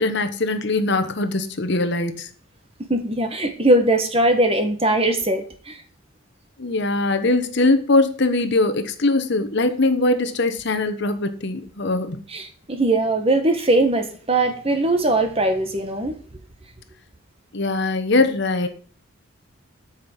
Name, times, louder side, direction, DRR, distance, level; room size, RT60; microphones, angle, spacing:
voice 1, 0.0-2.3 6.6-12.2 17.5-18.7, left 2 dB, 55° left, 9 dB, 1.0 m, -21 dB
voice 2, 2.9-5.8 12.3-16.2, right 2 dB, 25° right, 7 dB, 1.3 m, -20 dB
8.6 x 5.8 x 7.1 m, 0.42 s
head